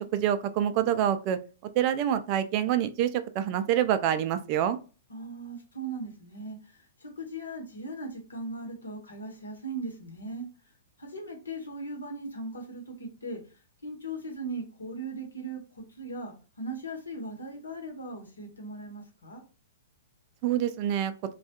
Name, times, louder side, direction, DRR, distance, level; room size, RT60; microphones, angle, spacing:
voice 1, 0.0-1.4 1.8-4.8 20.4-21.1, right 10 dB, 40° right, 10 dB, 0.3 m, -26 dB
voice 2, 5.1-10.5 11.0-13.4 13.8-19.4, right 2 dB, 85° left, 2 dB, 1.0 m, -38 dB
2.3 x 2.2 x 2.8 m, 0.34 s
hypercardioid pair, 115°, 0 cm